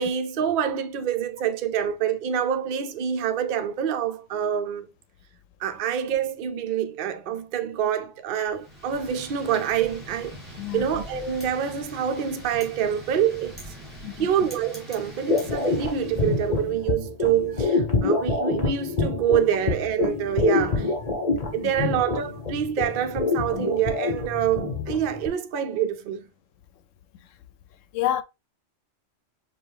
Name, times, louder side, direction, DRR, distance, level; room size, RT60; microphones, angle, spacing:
voice 1, 0.0-4.9 5.6-10.4 10.7-13.6 14.2-20.9 21.5-26.2, right 9 dB, 55° right, 0.6 m, -26 dB
Wind, 8.5-16.7, equal, 10° right, 2.1 m, -43 dB
voice 2, 10.6-10.9 14.0-14.3 21.6-21.7 27.9-28.2, left 12 dB, 80° left, 0.9 m, -27 dB
sound 1, 15.3-25.3, left 3 dB, 35° left, 1.1 m, -26 dB
5.3 x 2.4 x 3.2 m
omnidirectional pair, 1.3 m